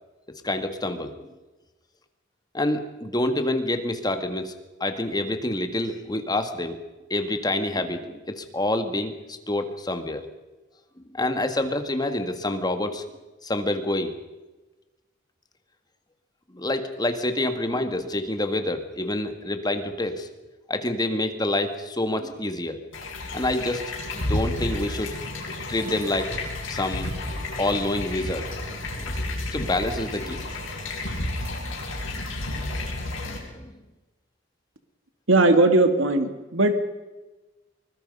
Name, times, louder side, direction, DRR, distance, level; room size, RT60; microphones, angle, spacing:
voice 1, 0.4-1.2 2.5-4.5 4.8-6.8 7.1-10.2 11.1-13.0 13.4-14.1 16.5-20.3 20.7-22.8 23.3-23.8 24.1-25.1 25.7-26.3 26.7-27.1 27.6-28.5 28.9-30.4 33.3-33.8, left 1 dB, 20° left, 8 dB, 1.8 m, -27 dB
sound 1, 22.9-33.4, left 2 dB, 80° left, 6.4 m, -31 dB
voice 2, 35.3-36.8, right 2 dB, 80° right, 8 dB, 2.1 m, -19 dB
24.0 x 20.5 x 5.4 m, 1.1 s
head